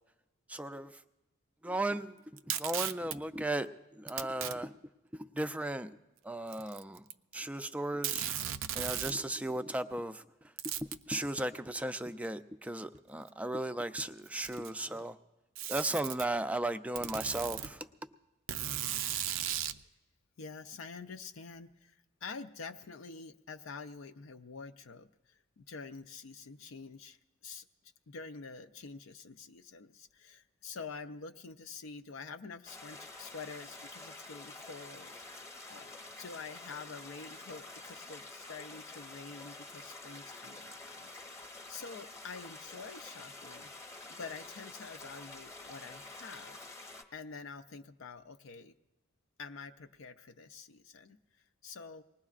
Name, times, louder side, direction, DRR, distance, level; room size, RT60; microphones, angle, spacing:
voice 1, 0.5-1.0 1.6-4.7 5.1-5.9 6.2-7.0 7.3-8.3 8.7-10.3 10.8-15.2 15.7-17.9, right 1 dB, 5° right, 0.4 m, -36 dB
Packing tape duct tape, 2.4-3.2 4.1-4.6 5.4-5.5 6.5-7.3 7.6-7.7 8.0-9.2 10.6-11.0 12.2-12.3 13.3-13.4 14.2-14.8 15.6-16.3 17.0-17.7 18.5-19.8, right 10 dB, 65° right, 0.5 m, -36 dB
voice 2, 20.4-27.7 28.1-46.6 47.1-48.8 49.4-52.0, left 5 dB, 75° left, 0.5 m, -47 dB
sound 1, 32.7-47.0, left 2 dB, 15° left, 1.0 m, -48 dB
25.0 x 19.5 x 2.5 m
head